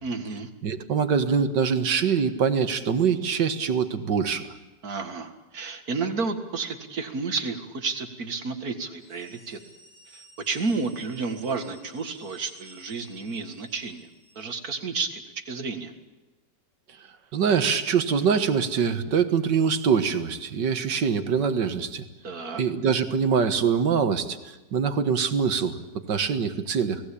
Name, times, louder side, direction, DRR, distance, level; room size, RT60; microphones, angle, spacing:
voice 1, 0.0-0.5 4.8-9.6 10.1-14.1 14.4-15.9 22.2-22.6, right 4 dB, 55° right, 7 dB, 2.3 m, -31 dB
voice 2, 0.6-4.5 17.3-22.0 22.6-25.8 26.1-27.0, right 6 dB, 80° right, 9 dB, 2.1 m, -24 dB
sound 1, 8.9-14.6, right 1 dB, 65° left, 7.0 m, -55 dB
29.5 x 19.0 x 8.6 m, 1.1 s
omnidirectional pair, 1.9 m